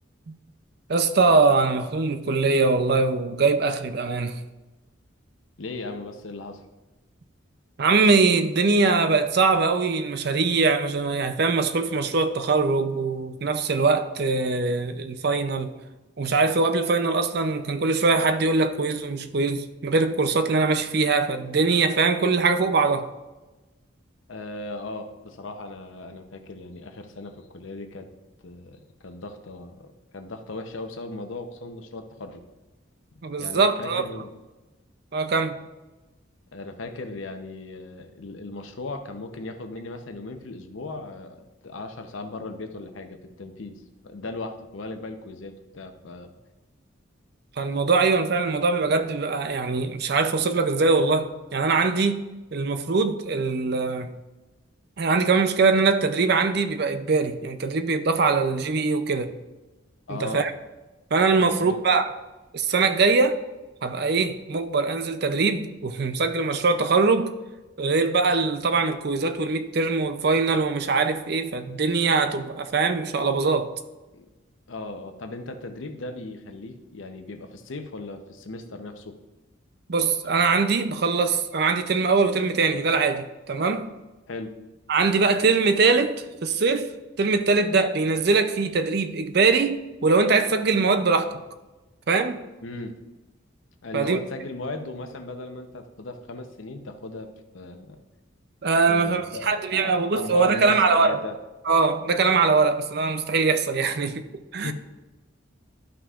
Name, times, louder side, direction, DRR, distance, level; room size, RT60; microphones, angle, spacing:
voice 1, 0.9-4.4 7.8-15.7 16.2-23.1 33.2-34.0 35.1-35.6 47.6-52.2 52.5-54.1 55.0-59.3 60.1-60.5 61.1-62.1 62.5-63.4 63.8-67.3 67.8-73.7 79.9-83.9 84.9-86.9 87.2-91.4 92.1-92.5 93.9-94.2 98.6-101.2 101.7-104.3 104.5-104.7, right 4 dB, 55° right, 0.5 m, -22 dB
voice 2, 5.6-6.6 24.3-28.1 28.4-32.4 33.4-34.3 36.5-46.3 60.1-60.5 61.4-61.8 74.1-74.3 74.7-79.2 84.3-84.5 92.6-93.0 93.8-98.0 98.9-101.4 104.6-104.7, left 2 dB, 80° left, 0.8 m, -37 dB
12.5 x 5.8 x 2.5 m
head